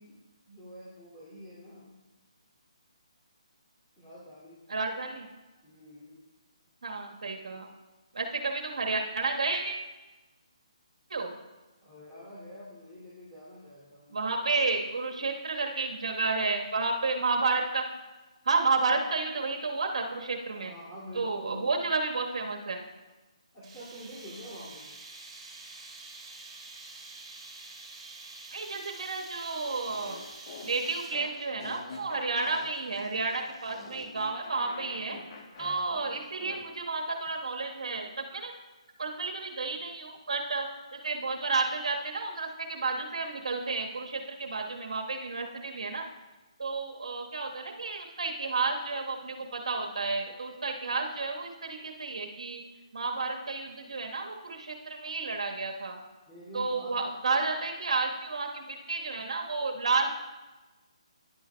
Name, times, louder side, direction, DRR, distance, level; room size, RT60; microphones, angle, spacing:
voice 1, 0.0-1.9 4.0-4.6 5.6-6.3 11.8-14.2 20.6-21.7 23.5-24.9 35.6-35.8 56.3-57.0, equal, 15° left, -11 dB, 2.6 m, -47 dB
voice 2, 4.7-5.3 6.8-7.7 8.1-9.9 11.1-11.4 14.1-17.8 18.4-20.7 21.1-22.8 28.5-30.2 30.6-35.2 35.6-38.5 39.0-46.0 46.6-52.6 52.9-56.0 56.5-60.1, right 3 dB, 70° right, 2 dB, 1.4 m, -31 dB
sound 1, 23.6-31.4, right 3 dB, 20° right, 2.3 m, -47 dB
sound 2, 29.7-36.6, left 4 dB, 45° left, 1.2 m, -46 dB
10.5 x 8.5 x 2.3 m, 1.2 s
figure-of-eight pair, 150°, 3 cm